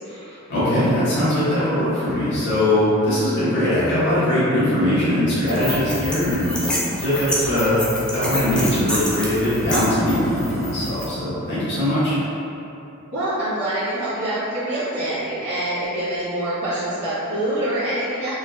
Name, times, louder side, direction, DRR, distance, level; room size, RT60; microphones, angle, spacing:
voice 1, 0.1-7.8 8.1-12.2, left 1 dB, 55° left, -12 dB, 1.2 m, -21 dB
sound 1, 5.5-11.0, equal, 5° left, 0.4 m, -28 dB
voice 2, 13.1-18.3, right 1 dB, 75° right, -15 dB, 1.2 m, -25 dB
3.8 x 2.4 x 2.4 m, 2.9 s
head